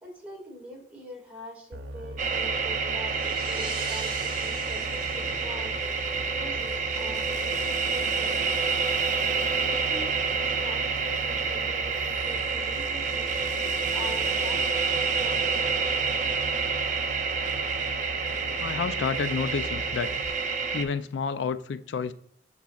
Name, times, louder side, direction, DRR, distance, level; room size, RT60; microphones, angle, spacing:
voice 1, 0.0-4.9 5.1-5.7 6.3-8.6 9.4-10.1 10.4-13.3 13.9-16.3, equal, 10° right, 2.0 m, -44 dB
sound 1, 1.7-20.3, right 1 dB, 75° right, 0.7 m, -40 dB
sound 2, 2.1-6.7, right 3 dB, 30° right, 1.2 m, -42 dB
sound 3, 2.2-20.8, right 5 dB, 45° right, 0.7 m, -28 dB
voice 2, 18.6-20.1 20.7-22.1, left 5 dB, 80° left, 0.4 m, -30 dB
11.5 x 4.1 x 2.3 m
head